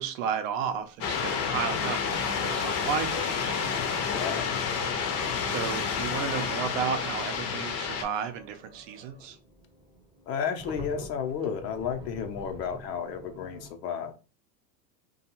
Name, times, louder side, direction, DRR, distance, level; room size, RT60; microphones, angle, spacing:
voice 1, 0.0-3.7 5.4-9.4, right 8 dB, 55° right, 8 dB, 0.6 m, -33 dB
sound 1, 0.7-0.8 3.0-13.7, equal, 10° right, 0.6 m, -49 dB
sound 2, 1.0-8.0, left 6 dB, 40° left, 0.6 m, -29 dB
voice 2, 4.1-4.5 10.3-14.1, left 7 dB, 80° left, 5 dB, 0.7 m, -32 dB
2.5 x 2.3 x 2.9 m, 0.34 s
hypercardioid pair, 110°, 49 cm